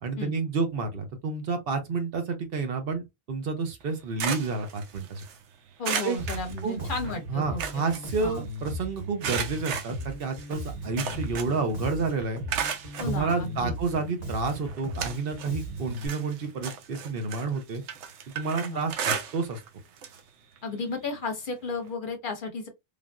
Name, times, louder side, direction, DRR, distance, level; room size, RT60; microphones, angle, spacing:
voice 1, 0.0-3.0 3.3-5.2 6.0-6.2 6.6-6.9 7.3-12.4 13.1-17.8 18.3-19.6, right 4 dB, 60° right, 0.8 m, -30 dB
sound 1, 3.8-5.4 5.8-7.1 7.4-8.7 9.2-11.7 12.0-13.1 13.8-13.9 14.4-15.6 15.9-19.7 20.0-20.2 20.6-20.7 21.9-22.0, right 7 dB, 85° right, 0.9 m, -34 dB
voice 2, 5.8-7.8 8.2-8.4 13.0-13.7 18.6-18.8 20.6-22.7, left 3 dB, 55° left, 0.7 m, -33 dB
Bass guitar, 6.2-16.1, equal, 35° right, 1.1 m, -37 dB
3.4 x 2.5 x 2.2 m
omnidirectional pair, 1.2 m